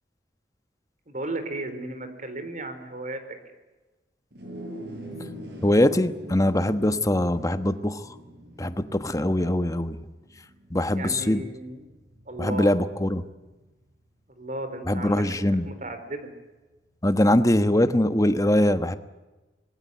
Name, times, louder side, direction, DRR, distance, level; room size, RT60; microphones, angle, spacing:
voice 1, 1.1-3.2 10.9-11.9 12.3-12.7 14.4-15.2 15.7-16.3, right 2 dB, 45° right, 9 dB, 4.2 m, -34 dB
sound 1, 4.3-13.9, right 1 dB, 70° right, 7.7 m, -43 dB
voice 2, 5.6-8.1 8.6-10.0 10.7-11.4 12.4-13.2 14.9-15.7 17.0-19.0, left 1 dB, 20° left, 10 dB, 1.2 m, -22 dB
25.5 x 20.5 x 9.3 m, 1.2 s
head